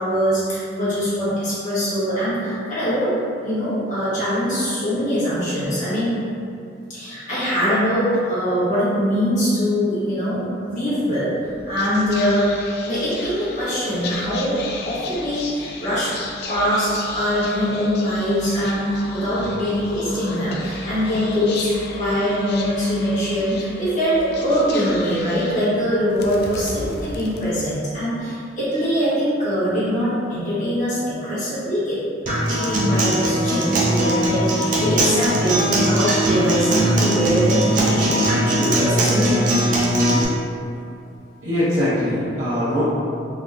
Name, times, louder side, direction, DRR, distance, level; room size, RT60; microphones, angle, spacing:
voice 1, 0.0-3.1 3.4-6.2 6.9-11.3 11.7-12.5 12.8-14.6 14.8-16.1 16.5-32.0 32.3-39.4, equal, 45° left, -12 dB, 1.3 m, -22 dB
Whispering, 11.4-28.0, left 3 dB, 60° left, 0.3 m, -35 dB
Acoustic guitar, 32.3-40.2, right 1 dB, 45° right, 0.5 m, -20 dB
voice 2, 41.4-42.8, left 1 dB, 85° right, -13 dB, 0.7 m, -21 dB
3.4 x 2.2 x 2.5 m, 2.5 s
head